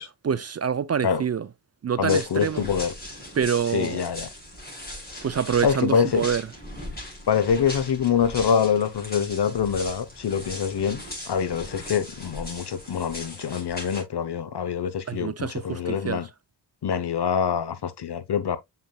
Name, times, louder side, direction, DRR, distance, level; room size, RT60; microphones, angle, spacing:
voice 1, 0.0-1.5 1.8-2.6 3.4-4.0 5.2-6.4 15.1-16.2, right 7 dB, 40° right, 0.4 m, -26 dB
voice 2, 2.0-2.9 3.7-4.3 5.6-6.2 7.3-16.3 16.8-18.6, left 7 dB, 65° left, 0.9 m, -25 dB
sound 1, 2.1-14.0, left 1 dB, 20° left, 5.0 m, -39 dB
7.4 x 5.7 x 2.3 m
cardioid pair, 75°, 44 cm